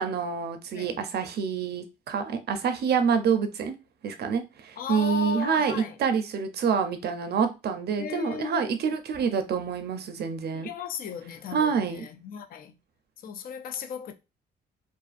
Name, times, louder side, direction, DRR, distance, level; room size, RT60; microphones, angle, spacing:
voice 1, 0.0-3.7 4.0-10.7 11.5-12.0, right 6 dB, 55° right, 0.5 m, -27 dB
voice 2, 4.8-6.0 8.0-9.0 10.5-12.8 13.2-14.1, left 7 dB, 50° left, 0.4 m, -36 dB
2.4 x 2.4 x 2.4 m
cardioid pair, 90°, 20 cm